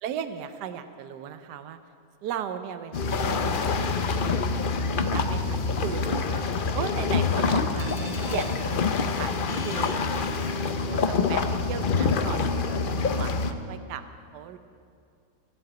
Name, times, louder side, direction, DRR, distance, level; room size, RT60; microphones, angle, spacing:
voice 1, 0.0-1.8 2.2-4.4 4.8-6.4 6.7-8.6 9.1-14.0 14.3-14.6, right 9 dB, 75° right, 10 dB, 1.3 m, -37 dB
sound 1, 2.9-13.5, left 4 dB, 70° left, 0.5 m, -26 dB
sound 2, 7.8-10.8, left 2 dB, 40° left, 1.7 m, -45 dB
16.0 x 7.8 x 8.9 m, 2.4 s
omnidirectional pair, 1.8 m